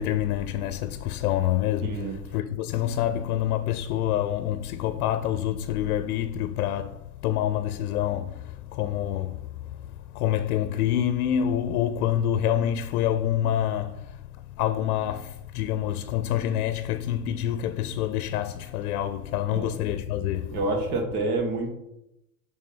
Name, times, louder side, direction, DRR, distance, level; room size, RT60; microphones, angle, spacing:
voice 1, 0.0-9.5 10.1-14.1 14.6-20.6, left 11 dB, 85° left, 0.6 m, -27 dB
voice 2, 1.8-2.2 19.5-19.7 20.5-21.7, right 2 dB, 85° right, 1.9 m, -28 dB
6.8 x 3.6 x 5.5 m
supercardioid pair, 125°, 43 cm